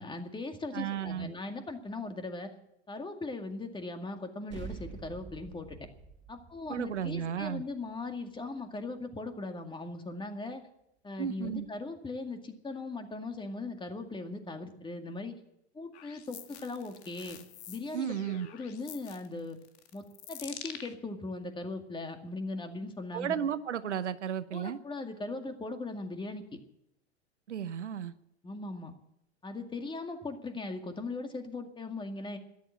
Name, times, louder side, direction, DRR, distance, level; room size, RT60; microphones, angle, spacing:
voice 1, 0.0-2.5 2.9-5.8 6.3-10.6 11.0-15.3 15.7-17.4 17.7-18.2 18.5-19.6 19.9-23.4 24.5-26.6 28.4-28.9 29.4-32.4, left 3 dB, 15° left, 6 dB, 2.1 m, -39 dB
voice 2, 0.7-1.3 6.7-7.6 11.2-11.7 17.9-18.5 23.1-24.8 27.5-28.1, right 9 dB, 85° right, 13 dB, 0.9 m, -34 dB
sound 1, 4.5-9.3, right 5 dB, 30° right, 2.4 m, -48 dB
sound 2, 15.9-20.9, left 10 dB, 70° left, 1.8 m, -47 dB
13.5 x 11.0 x 8.5 m, 0.77 s
hypercardioid pair, 100°, 34 cm